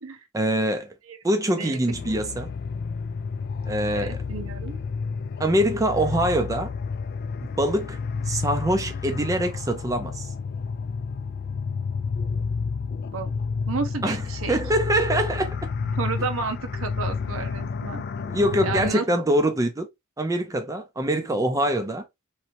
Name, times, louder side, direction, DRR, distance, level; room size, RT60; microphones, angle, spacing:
voice 1, 0.3-0.9 1.2-2.5 3.7-4.2 5.4-6.7 7.4-8.0 8.3-10.3 14.0-14.2 14.5-15.6 18.2-19.9 20.2-22.0, right 1 dB, 15° right, 0.5 m, -24 dB
voice 2, 1.5-2.1 3.9-4.8 13.1-13.3 13.7-14.6 16.0-18.0 18.6-19.2, right 4 dB, 70° right, 0.9 m, -32 dB
sound 1, 1.9-18.9, left 5 dB, 50° left, 0.3 m, -30 dB
3.9 x 3.1 x 2.8 m
head